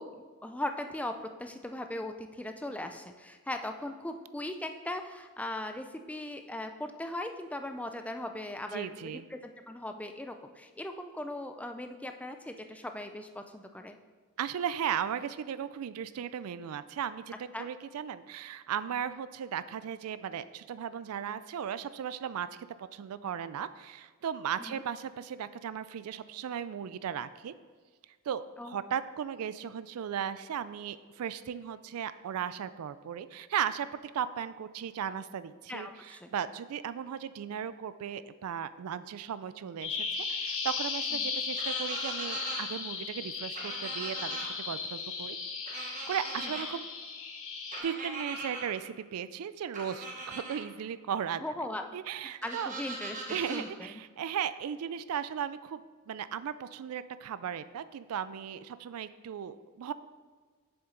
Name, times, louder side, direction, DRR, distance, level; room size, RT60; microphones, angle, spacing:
voice 1, 0.0-9.4 9.7-14.0 17.5-17.7 24.6-24.8 28.6-28.8 35.7-36.3 41.2-41.3 46.4-46.5 51.4-52.0 52.4-54.0, left 1 dB, 5° left, 6 dB, 0.4 m, -39 dB
voice 2, 8.7-9.3 14.4-22.5 22.8-27.5 28.3-33.9 34.1-45.4 45.7-46.8 47.8-51.4 51.9-52.7 53.3-55.8 56.1-59.9, right 8 dB, 75° right, 14 dB, 0.4 m, -36 dB
Bird vocalization bird call bird song, 39.8-47.8, left 5 dB, 65° left, 0.9 m, -36 dB
sound 1, 41.6-42.6 43.6-44.5 45.7-46.6 47.7-48.7 49.7-50.6 52.4-53.6, right 2 dB, 35° right, 1.4 m, -40 dB
7.3 x 7.0 x 3.8 m, 1.5 s
head